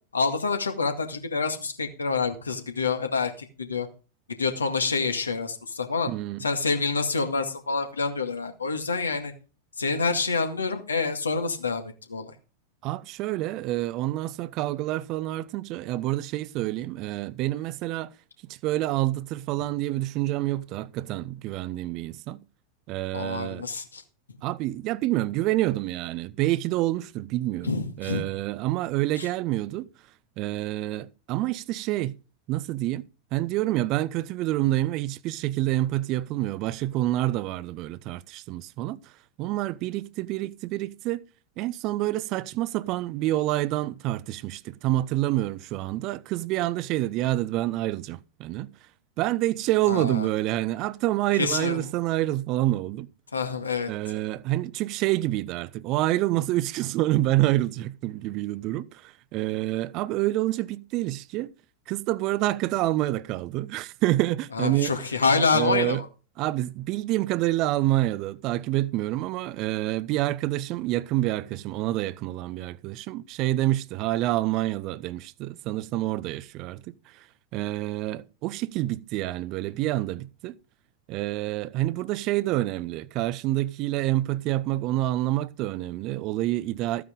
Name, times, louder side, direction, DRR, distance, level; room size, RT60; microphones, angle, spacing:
voice 1, 0.1-3.9 4.4-6.1 6.4-9.3 9.8-12.3 23.1-24.0 27.6-28.3 29.2-29.3 49.9-50.3 51.3-51.8 53.3-53.9 64.5-66.1, left 4 dB, 75° left, 2.0 m, -27 dB
voice 2, 6.1-6.4 12.8-18.1 18.6-22.4 22.9-23.6 24.4-29.9 30.4-32.2 32.5-33.0 33.3-39.0 39.4-41.2 41.6-48.7 49.2-53.1 53.9-61.5 61.9-64.9 65.5-66.0 66.4-76.9 77.5-80.6 81.1-87.0, right 16 dB, 40° right, 0.6 m, -27 dB
14.5 x 9.4 x 3.8 m
figure-of-eight pair, 90°, 0 cm